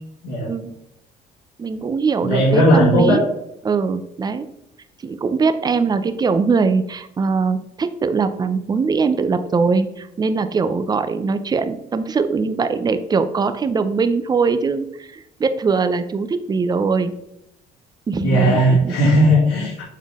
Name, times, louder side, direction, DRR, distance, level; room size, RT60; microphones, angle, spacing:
voice 1, 1.6-3.2 3.6-4.5 5.0-17.1 18.1-18.9, right 4 dB, 25° right, 10 dB, 0.5 m, -21 dB
voice 2, 2.2-3.2 18.2-19.8, equal, 85° left, -5 dB, 2.0 m, -16 dB
7.4 x 3.7 x 3.6 m, 0.81 s
cardioid pair, 110°, 17 cm